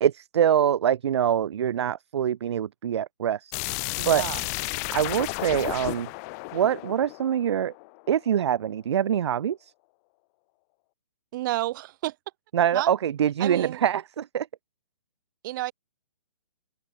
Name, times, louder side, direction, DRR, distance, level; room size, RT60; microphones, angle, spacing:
voice 1, 0.0-3.5 4.1-4.2 4.9-6.1 6.5-7.7 8.1-9.7 12.5-14.5, right 9 dB, 60° right, 0.6 m, -24 dB
sound 1, 3.5-8.2, left 30 dB, 30° left, 2.1 m, -33 dB
voice 2, 4.0-4.5 11.3-12.2 12.7-12.9 13.4-13.8 15.4-15.7, right 16 dB, 40° right, 4.6 m, -30 dB
open air
figure-of-eight pair, 135°, 16 cm